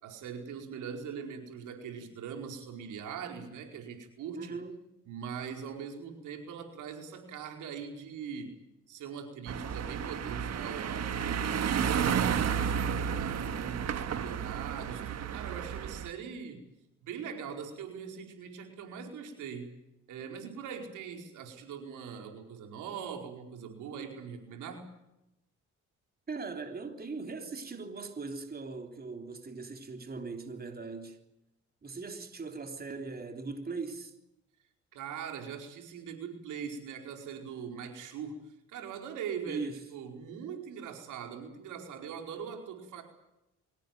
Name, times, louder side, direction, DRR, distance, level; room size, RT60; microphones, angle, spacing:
voice 1, 0.0-4.5 5.1-8.6 8.9-12.8 13.2-16.6 17.0-19.7 20.1-24.9 34.9-43.0, right 7 dB, 85° right, 4.8 m, -41 dB
voice 2, 4.3-4.8 26.3-31.2 31.8-34.1 39.5-39.8, right 4 dB, 30° right, 3.6 m, -40 dB
sound 1, 9.5-16.1, right 7 dB, 60° right, 1.8 m, -32 dB
24.5 x 17.5 x 9.3 m
cardioid pair, 90°, 30 cm